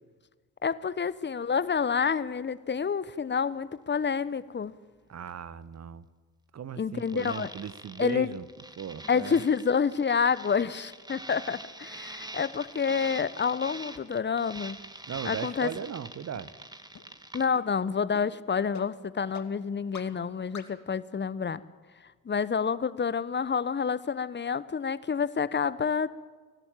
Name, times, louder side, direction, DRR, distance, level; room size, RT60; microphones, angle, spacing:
voice 1, 0.6-4.7 6.8-7.5 8.0-8.3 9.1-14.8 15.2-15.7 17.3-21.6 22.2-26.1, left 6 dB, 25° left, 17 dB, 1.1 m, -28 dB
voice 2, 5.1-6.1 6.5-8.4 8.8-9.4 15.1-16.5, right 8 dB, 40° right, 16 dB, 1.2 m, -37 dB
sound 1, 7.0-17.5, right 1 dB, 10° right, 2.3 m, -44 dB
sound 2, 13.9-14.0 14.5-14.6 15.1-15.2 15.7-15.8 16.3-16.4 16.9-17.0 17.5-17.6 18.1-18.2 18.7-18.8 19.3-19.4 19.9-20.0 20.5-20.6, left 7 dB, 40° left, 2.5 m, -43 dB
24.0 x 17.0 x 9.1 m, 1.5 s
figure-of-eight pair, 50°, 42 cm